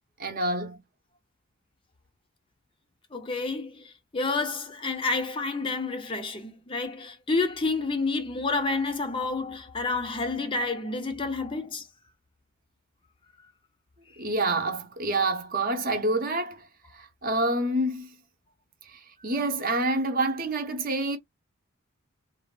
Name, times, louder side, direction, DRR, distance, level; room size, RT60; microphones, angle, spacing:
voice 1, 0.2-0.8 14.2-16.7 16.9-18.1 18.8-21.2, right 2 dB, 40° right, 0.7 m, -27 dB
voice 2, 3.1-11.9, left 3 dB, 25° left, 0.5 m, -29 dB
3.2 x 2.2 x 2.3 m
head